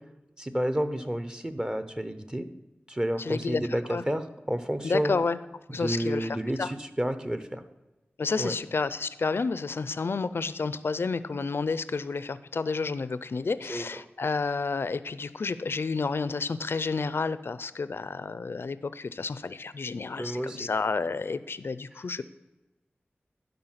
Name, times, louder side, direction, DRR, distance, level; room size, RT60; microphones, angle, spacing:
voice 1, 0.4-2.5 2.9-5.1 5.8-7.6 8.4-8.5 13.7-13.8 20.2-20.7, equal, 20° right, 10 dB, 0.8 m, -30 dB
voice 2, 3.2-3.6 3.9-4.0 4.8-5.4 5.7-6.7 8.2-22.2, left 4 dB, 70° left, 15 dB, 0.4 m, -30 dB
12.0 x 5.3 x 5.7 m, 1.1 s
wide cardioid pair, 75°, 4 cm